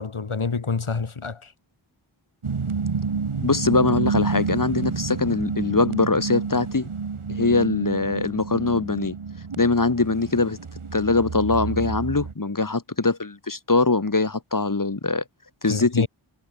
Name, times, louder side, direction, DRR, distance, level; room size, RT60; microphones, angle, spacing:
voice 1, 0.0-1.5 15.7-16.1, left 4 dB, 80° left, 2.6 m, -27 dB
sound 1, 2.4-12.3, right 5 dB, 85° right, 2.0 m, -29 dB
voice 2, 3.4-6.9 7.3-9.1 9.6-10.6 10.9-15.2 15.6-16.1, left 3 dB, 40° left, 1.8 m, -22 dB
wide cardioid pair, 45°, 49 cm